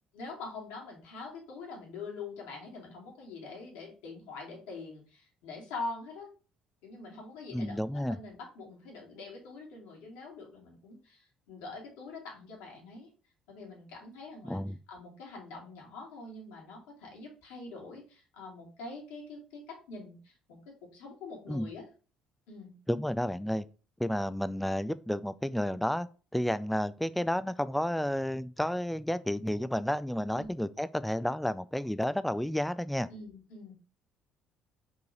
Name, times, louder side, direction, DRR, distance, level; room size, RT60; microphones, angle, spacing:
voice 1, 0.1-6.3 6.8-13.1 13.5-14.6 14.9-21.9 22.5-22.7 30.3-30.5 33.1-33.7, left 3 dB, 65° left, 2.6 m, -44 dB
voice 2, 7.5-8.2 14.4-14.8 21.5-21.7 22.9-23.6 24.0-26.1 26.3-33.1, equal, 5° left, 0.5 m, -31 dB
5.5 x 3.9 x 5.0 m
figure-of-eight pair, 50°, 3 cm